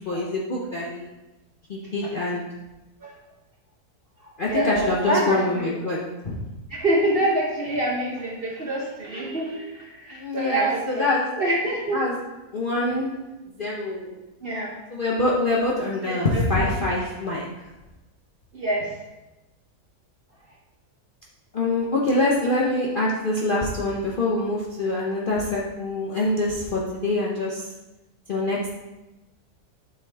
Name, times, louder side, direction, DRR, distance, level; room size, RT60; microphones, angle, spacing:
voice 1, 0.1-1.1 1.7-2.4 4.4-6.4 10.1-11.3 11.9-12.2 12.5-13.1 13.6-14.2 14.9-17.5 21.5-27.7 28.3-28.7, left 2 dB, 50° left, -4 dB, 0.6 m, -25 dB
voice 2, 4.5-5.7 6.7-11.1 11.4-12.0 14.4-14.7 16.0-16.7 18.5-18.9, right 1 dB, 50° right, -2 dB, 0.8 m, -26 dB
7.8 x 3.6 x 3.3 m, 1.0 s
omnidirectional pair, 1.7 m